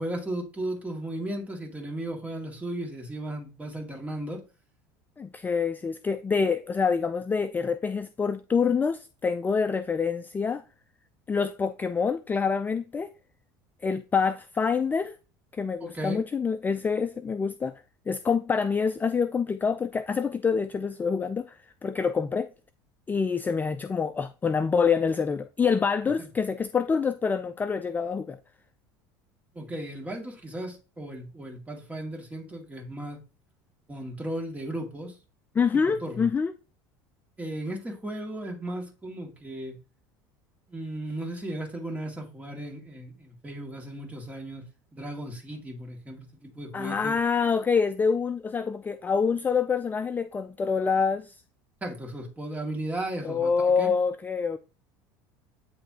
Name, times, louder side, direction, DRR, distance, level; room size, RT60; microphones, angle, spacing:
voice 1, 0.0-4.4 15.8-16.2 26.2-26.3 29.5-33.2 33.9-35.2 35.9-36.3 37.4-39.8 40.7-44.6 44.9-47.1 51.8-53.9, right 1 dB, 15° right, 2.2 m, -35 dB
voice 2, 5.2-10.6 11.3-13.1 13.8-15.2 15.5-22.5 23.1-28.4 35.5-36.5 46.7-51.4 53.2-54.6, left 5 dB, 20° left, 0.3 m, -26 dB
9.8 x 3.3 x 2.8 m
supercardioid pair, 100°, 10 cm